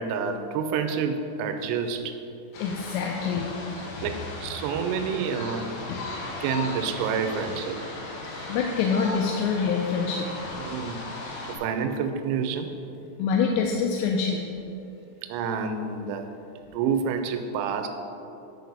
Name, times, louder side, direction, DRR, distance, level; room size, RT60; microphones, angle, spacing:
voice 1, 0.0-2.2 3.8-5.7 6.3-7.8 10.6-11.0 11.4-12.8 15.2-16.3 16.7-17.9, right 6 dB, 80° right, 7 dB, 2.5 m, -28 dB
sound 1, 2.5-11.6, left 2 dB, 65° left, 2.3 m, -37 dB
voice 2, 2.6-3.5 5.9-6.0 8.5-10.3 13.2-14.4, left 6 dB, 85° left, 1 dB, 2.7 m, -25 dB
11.0 x 4.3 x 5.4 m, 2.8 s
omnidirectional pair, 5.0 m